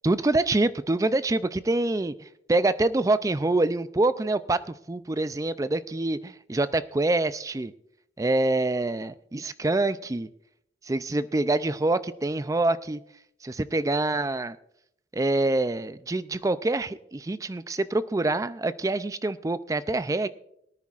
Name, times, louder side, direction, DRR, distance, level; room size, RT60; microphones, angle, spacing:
voice 1, 0.0-7.7 8.2-10.3 10.8-13.0 13.4-14.6 15.1-20.3, right 2 dB, 20° right, 0.4 m, -26 dB
22.5 x 9.7 x 2.4 m
head